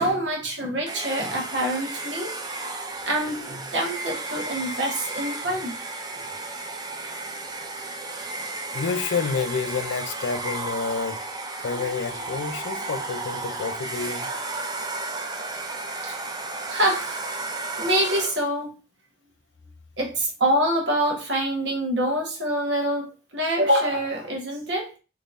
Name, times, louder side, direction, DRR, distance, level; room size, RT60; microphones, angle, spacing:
voice 1, 0.0-2.4 3.0-5.8 6.1-6.2 11.7-11.8 16.0-16.1 16.7-17.2 17.8-18.7 20.0-25.0, right 1 dB, 75° right, 1.3 m, -25 dB
Domestic sounds home sounds, 0.9-18.5, right 2 dB, 20° right, 0.4 m, -33 dB
voice 2, 8.7-11.3 11.6-14.3, left 5 dB, 80° left, 0.4 m, -29 dB
3.7 x 3.0 x 2.5 m
head